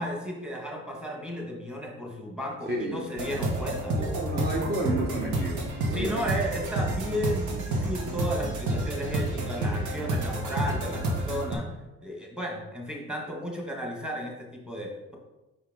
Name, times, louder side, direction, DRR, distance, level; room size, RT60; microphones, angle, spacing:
voice 1, 0.0-4.0 5.9-11.7 12.0-15.2, equal, 5° right, -1 dB, 1.5 m, -34 dB
voice 2, 2.7-3.1 3.9-6.3, right 2 dB, 35° right, -1 dB, 1.0 m, -31 dB
sound 1, 3.2-11.6, right 1 dB, 75° right, 1.2 m, -29 dB
5.7 x 4.6 x 3.6 m, 1.0 s
cardioid pair, 90°, 30 cm